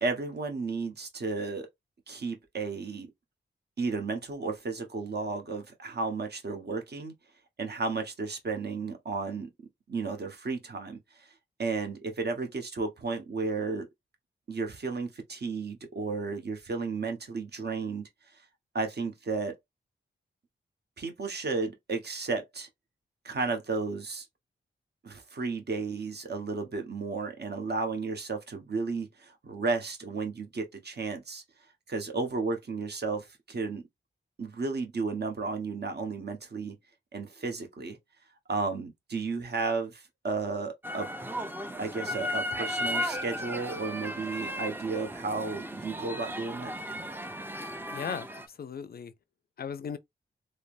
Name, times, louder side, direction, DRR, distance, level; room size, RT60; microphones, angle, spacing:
voice 1, 0.0-1.7 2.1-3.1 3.8-7.1 7.6-9.5 9.9-11.3 11.6-13.9 14.5-18.1 18.7-19.6 21.0-22.7 23.2-24.3 25.0-31.4 31.9-33.8 34.4-36.8 37.1-38.0 38.5-41.1 41.8-46.7, right 4 dB, 50° right, 1.0 m, -33 dB
sound 1, 40.8-48.5, equal, 10° right, 0.5 m, -35 dB
voice 2, 47.9-49.1 49.6-50.0, left 7 dB, 45° left, 0.5 m, -37 dB
3.1 x 2.0 x 2.5 m
cardioid pair, 45°, 21 cm